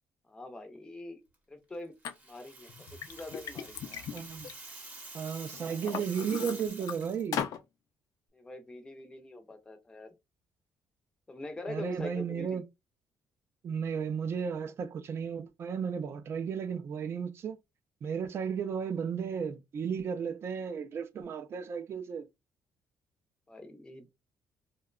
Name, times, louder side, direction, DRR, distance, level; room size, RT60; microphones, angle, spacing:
voice 1, 0.3-1.2 1.5-1.9 2.2-2.7 3.1-4.0 5.6-5.8 8.3-10.1 11.3-12.6 23.5-24.1, left 2 dB, 15° left, 0.5 m, -44 dB
Liquid, 2.0-2.1 2.7-5.1 5.5-6.9 7.3-7.6, left 9 dB, 65° left, 0.4 m, -38 dB
Rattle (instrument), 2.0-7.3, right 2 dB, 25° right, 0.8 m, -48 dB
voice 2, 4.1-4.5 5.1-7.5 11.7-12.6 13.6-17.6 18.0-22.3, right 7 dB, 40° right, 0.4 m, -34 dB
2.7 x 2.2 x 2.3 m
cardioid pair, 155°, 7 cm